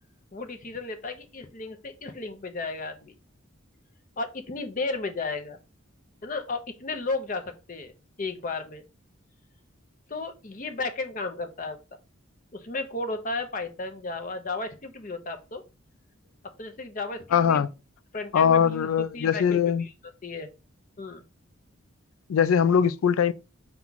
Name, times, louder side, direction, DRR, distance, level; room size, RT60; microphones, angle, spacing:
voice 1, 0.3-3.1 4.2-5.6 6.2-8.8 10.1-11.8 12.5-15.6 16.6-17.6 18.1-18.9 19.1-19.9 20.2-20.5 21.0-21.2, left 3 dB, 40° left, 0.7 m, -34 dB
voice 2, 17.3-17.7 18.3-19.8 22.3-23.3, left 7 dB, 85° left, 0.4 m, -21 dB
5.9 x 2.3 x 3.9 m
head